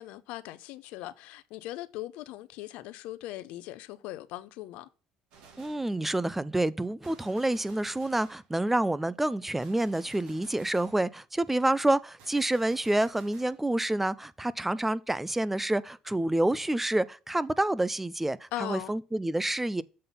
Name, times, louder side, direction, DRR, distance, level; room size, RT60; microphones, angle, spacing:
voice 1, 0.0-4.9 18.5-18.9, left 15 dB, 75° left, 0.6 m, -39 dB
Gunshot gunfire, 5.3-5.9 7.0-8.5 9.6-11.0 12.2-13.6, right 5 dB, 75° right, 2.3 m, -54 dB
voice 2, 5.6-19.8, right 1 dB, 10° right, 0.4 m, -28 dB
7.5 x 3.9 x 5.5 m
supercardioid pair, 80°, 2 cm